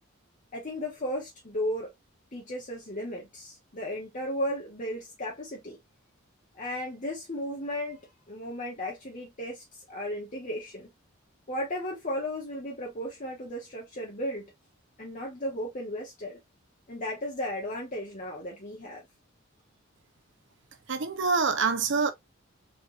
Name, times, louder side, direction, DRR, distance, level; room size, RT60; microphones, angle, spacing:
voice 1, 0.5-1.9 2.3-5.8 6.5-8.0 8.3-10.9 11.5-14.5 15.0-16.4 16.9-19.0, left 1 dB, 40° left, 1.3 m, -35 dB
voice 2, 20.9-22.1, right 4 dB, 60° right, 0.8 m, -25 dB
4.4 x 3.5 x 2.6 m
head